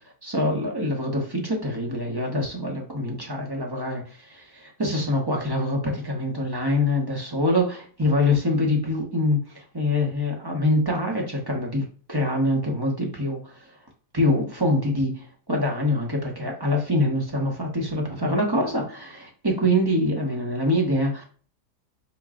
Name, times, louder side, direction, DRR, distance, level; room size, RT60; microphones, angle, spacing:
voice 1, 0.2-13.7 14.1-21.2, left 1 dB, 20° right, 0 dB, 0.8 m, -25 dB
5.3 x 2.3 x 3.7 m, 0.41 s
omnidirectional pair, 1.7 m